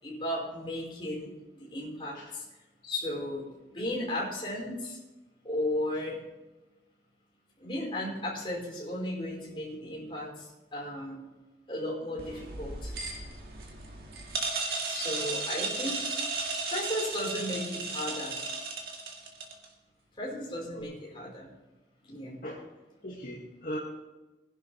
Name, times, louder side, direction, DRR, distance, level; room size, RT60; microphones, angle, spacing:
voice 1, 0.0-1.3 1.5-2.4 2.8-3.4 3.7-5.0 5.4-6.2 7.6-10.4 10.7-11.2 11.7-12.9 14.8-16.0 16.7-18.3 20.2-21.5 22.0-22.4, left 1 dB, 30° left, -4 dB, 5.1 m, -35 dB
sound 1, 12.2-19.7, right 3 dB, 60° right, 2.1 m, -35 dB
voice 2, 23.0-23.8, equal, 50° left, -6 dB, 2.4 m, -39 dB
20.5 x 11.0 x 3.5 m, 1.1 s
head